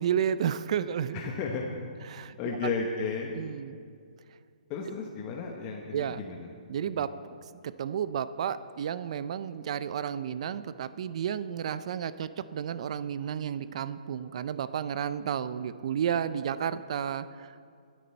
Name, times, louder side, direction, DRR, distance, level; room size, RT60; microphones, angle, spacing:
voice 1, 0.0-1.2 2.1-2.4 2.6-2.7 3.3-3.8 5.9-6.2 6.7-7.3 7.6-17.7, right 8 dB, 45° right, 14 dB, 0.5 m, -32 dB
voice 2, 1.1-1.7 2.4-3.3 4.7-6.5 7.0-7.1, left 5 dB, 25° left, 0 dB, 1.1 m, -33 dB
21.0 x 9.3 x 4.4 m, 2.2 s
hypercardioid pair, 160°, 5 cm